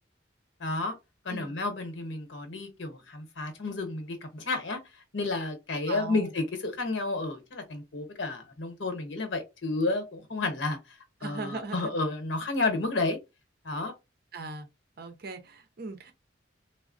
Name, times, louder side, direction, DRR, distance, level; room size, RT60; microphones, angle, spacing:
voice 1, 0.6-0.9 1.2-4.8 5.1-10.8 11.2-13.2 13.6-13.9, left 3 dB, 90° left, 0.9 m, -31 dB
voice 2, 5.9-6.3 11.2-12.0 14.3-14.7 15.0-16.1, right 3 dB, 55° right, 0.6 m, -39 dB
3.6 x 2.0 x 2.5 m
head